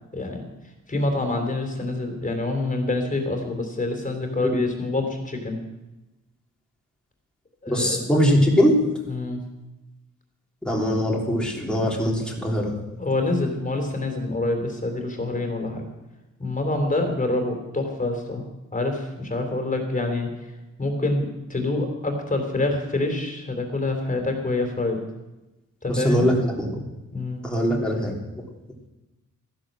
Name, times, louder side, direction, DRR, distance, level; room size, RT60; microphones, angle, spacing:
voice 1, 0.1-0.5 0.9-5.6 7.6-8.1 9.1-9.4 13.0-15.9 16.4-18.4 18.7-20.5 20.8-25.0 25.8-26.3 27.1-27.4, left 2 dB, 25° left, 4 dB, 3.5 m, -26 dB
voice 2, 7.7-8.8 10.6-12.7 25.9-26.7 27.4-28.2, equal, 5° left, -2 dB, 3.3 m, -21 dB
15.0 x 11.0 x 7.6 m, 1.0 s
wide cardioid pair, 135°, 32 cm